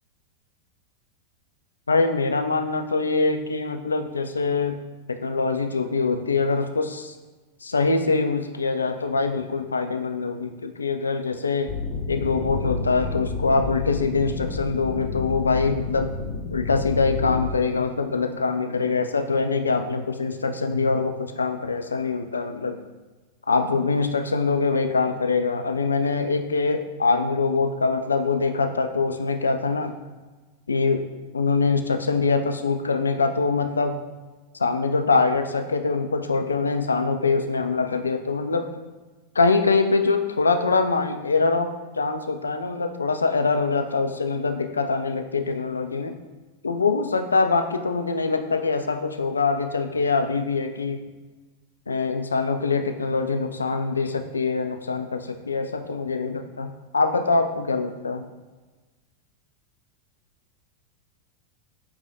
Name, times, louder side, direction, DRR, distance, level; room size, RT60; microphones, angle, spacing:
voice 1, 1.9-4.8 5.1-7.2 7.6-11.7 12.1-16.1 16.5-22.8 23.5-29.9 30.7-31.1 31.3-34.0 34.6-38.7 39.4-46.2 46.6-51.0 51.9-58.3, left 4 dB, 75° left, 6 dB, 0.3 m, -24 dB
sound 1, 11.7-17.5, left 4 dB, 35° left, 0.6 m, -30 dB
5.1 x 3.1 x 2.5 m, 1.3 s
figure-of-eight pair, 90°, 0 cm